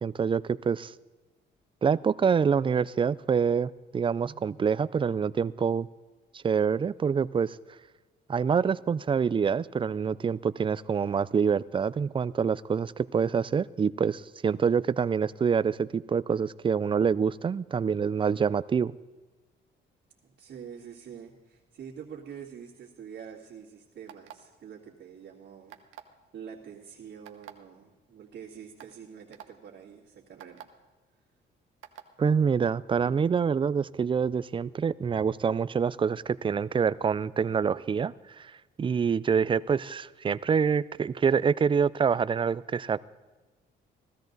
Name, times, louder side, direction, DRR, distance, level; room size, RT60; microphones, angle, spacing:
voice 1, 0.0-0.9 1.8-5.9 6.3-7.6 8.3-18.9 32.2-38.5 38.8-43.0, right 6 dB, 25° right, 18 dB, 0.4 m, -26 dB
voice 2, 20.4-25.8 26.0-30.7, right 7 dB, 65° right, -8 dB, 2.3 m, -46 dB
sound 1, 24.1-24.5 25.7-26.1 27.3-27.5 28.3-28.4 28.8-28.9 29.3-29.5 30.4-30.6 31.8-32.1, right 11 dB, 85° right, 1.0 m, -46 dB
16.0 x 13.0 x 3.9 m, 1.3 s
cardioid pair, 90°, 20 cm